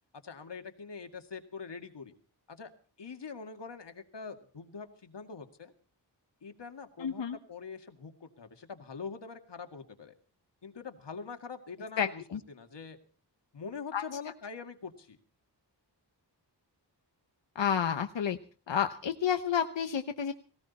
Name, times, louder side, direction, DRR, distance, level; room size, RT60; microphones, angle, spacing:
voice 1, 0.2-2.1 2.5-2.7 3.0-5.7 6.4-7.2 7.5-10.1 10.6-12.2 12.5-13.0 13.5-15.2, left 5 dB, 70° left, 6 dB, 2.1 m, -44 dB
voice 2, 7.0-7.4 12.0-12.4 13.9-14.0 17.5-18.4 18.7-20.3, left 8 dB, 90° left, 7 dB, 1.0 m, -30 dB
18.5 x 18.0 x 4.2 m, 0.40 s
wide cardioid pair, 105°, 43 cm